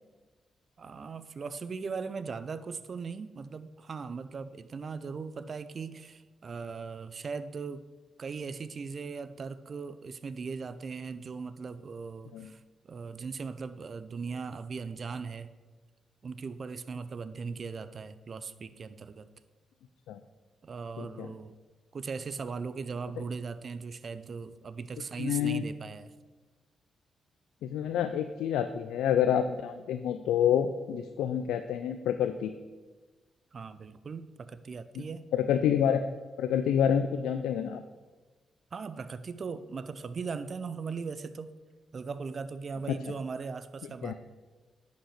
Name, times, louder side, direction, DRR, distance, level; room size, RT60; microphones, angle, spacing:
voice 1, 0.8-7.9 8.2-15.5 16.2-19.3 20.6-21.5 21.9-26.1 33.5-35.3 38.7-41.5 41.9-44.1, right 5 dB, 55° right, 13 dB, 0.5 m, -39 dB
voice 2, 21.0-21.3 25.2-25.6 27.6-32.6 35.0-35.1 35.3-36.0 36.4-37.8 42.9-43.0 44.0-44.1, left 9 dB, 85° left, 9 dB, 0.4 m, -28 dB
10.0 x 5.2 x 6.6 m, 1.3 s
supercardioid pair, 55°, 0 cm